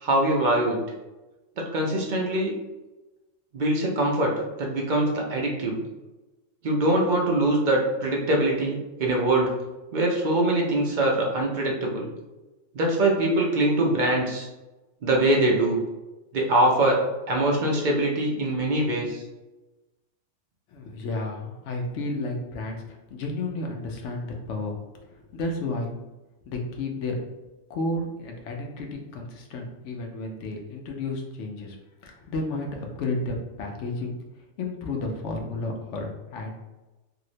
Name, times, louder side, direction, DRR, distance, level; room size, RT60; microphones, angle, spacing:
voice 1, 0.0-0.8 1.6-2.5 3.5-4.3 4.6-5.8 6.6-9.5 9.9-12.1 12.7-14.5 15.0-15.8 16.3-19.2, right 1 dB, 50° right, -1 dB, 0.6 m, -23 dB
voice 2, 20.7-25.9 26.5-27.2 27.7-31.8 32.0-34.2 34.6-36.6, left 2 dB, 75° left, 2 dB, 0.9 m, -32 dB
3.0 x 2.8 x 2.6 m, 1.1 s
omnidirectional pair, 1.3 m